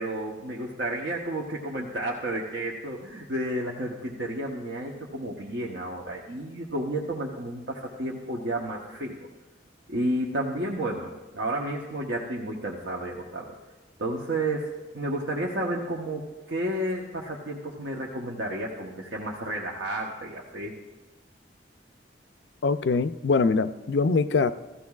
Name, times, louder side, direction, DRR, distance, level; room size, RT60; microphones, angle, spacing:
voice 1, 0.0-9.2 9.9-13.6 14.0-20.7, right 1 dB, 75° right, -2 dB, 1.0 m, -31 dB
voice 2, 22.6-24.5, left 4 dB, 70° left, 13 dB, 0.4 m, -23 dB
17.0 x 14.0 x 2.4 m, 1.2 s
head